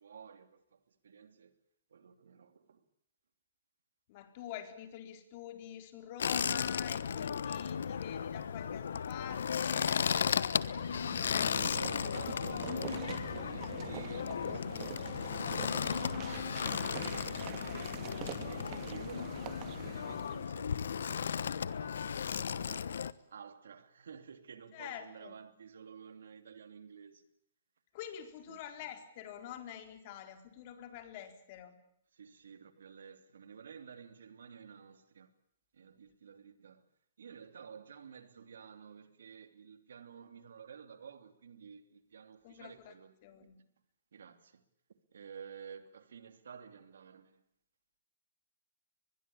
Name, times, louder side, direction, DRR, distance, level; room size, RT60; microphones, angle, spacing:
voice 1, 0.0-1.5 1.9-2.8 11.4-18.0 18.4-23.0 23.3-27.3 28.5-28.9 32.1-35.3 35.7-36.9 37.2-43.6 44.1-44.6 45.1-47.4, right 7 dB, 85° right, 2.9 m, -52 dB
voice 2, 4.1-10.3 11.1-11.9 15.9-16.3 24.7-25.4 27.9-31.8 42.4-42.9 43.2-43.6, left 10 dB, 45° left, 4.2 m, -47 dB
sound 1, 6.2-23.1, left 7 dB, 80° left, 1.1 m, -35 dB
sound 2, 10.5-20.5, right 13 dB, 35° right, 2.2 m, -46 dB
24.0 x 21.0 x 8.8 m
hypercardioid pair, 145°, 0 cm